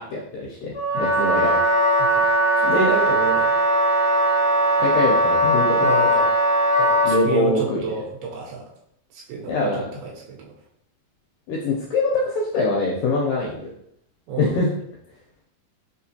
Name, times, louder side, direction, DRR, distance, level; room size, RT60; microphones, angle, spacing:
voice 1, 0.0-1.6 2.7-2.9 4.8-5.9 7.0-7.8 9.5-9.9 11.5-13.7 14.4-14.7, left 2 dB, 80° left, -3 dB, 1.9 m, -23 dB
Wind instrument woodwind instrument, 0.7-7.3, right 1 dB, 65° left, 0.9 m, -19 dB
voice 2, 2.6-3.5 5.8-6.3 6.8-8.6 9.1-10.5 14.3-14.7, right 5 dB, 80° right, -2 dB, 2.7 m, -30 dB
5.8 x 2.4 x 2.7 m, 0.73 s
omnidirectional pair, 4.4 m